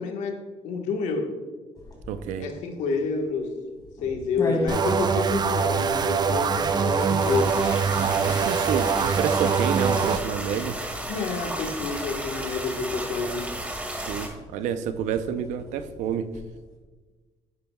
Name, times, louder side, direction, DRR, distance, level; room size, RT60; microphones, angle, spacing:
voice 1, 0.0-1.3 2.4-3.6 4.0-7.6 11.1-13.5, left 4 dB, 80° left, 3 dB, 1.4 m, -29 dB
sound 1, 1.7-16.7, left 1 dB, 30° left, 2.6 m, -40 dB
voice 2, 2.1-2.5 8.0-10.8 13.9-16.3, right 8 dB, 80° right, 10 dB, 0.6 m, -29 dB
sound 2, 4.7-10.2, right 6 dB, 35° right, 0.6 m, -23 dB
sound 3, 6.0-14.3, right 1 dB, 10° right, 2.1 m, -34 dB
10.0 x 9.7 x 2.3 m, 1.3 s
cardioid pair, 90°, 12 cm